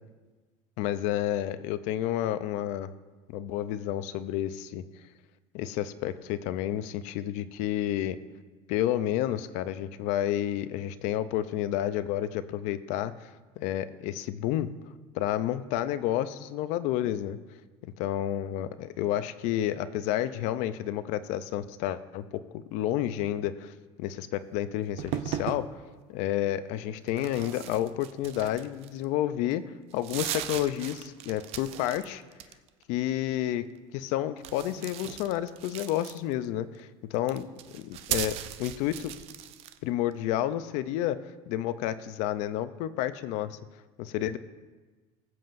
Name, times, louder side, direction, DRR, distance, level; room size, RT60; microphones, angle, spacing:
voice 1, 0.8-2.9 3.3-4.8 5.5-8.2 8.7-13.3 13.6-14.7 15.1-17.4 17.8-25.7 26.1-32.2 32.9-33.7 33.9-37.5 37.7-39.1 39.8-43.6 44.0-44.4, left 12 dB, 70° left, 14 dB, 0.5 m, -30 dB
sound 1, 25.0-25.7 27.1-29.0 29.5-29.6 29.9-32.0 32.3-32.8 34.4-36.5 37.1-39.8, right 11 dB, 55° right, 0.5 m, -37 dB
21.0 x 7.6 x 2.6 m, 1.3 s
cardioid pair, 155°, 13 cm